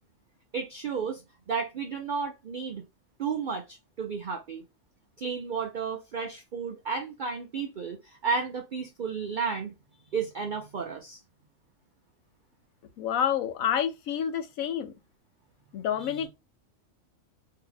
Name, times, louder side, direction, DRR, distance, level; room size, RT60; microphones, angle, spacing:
voice 1, 0.5-1.2 1.5-2.8 3.2-4.6 5.2-9.7 10.1-11.2 16.0-16.3, right 5 dB, 65° right, 0.4 m, -32 dB
voice 2, 13.0-14.9 15.7-16.3, left 9 dB, 75° left, 1.0 m, -28 dB
2.8 x 2.8 x 3.8 m
omnidirectional pair, 1.5 m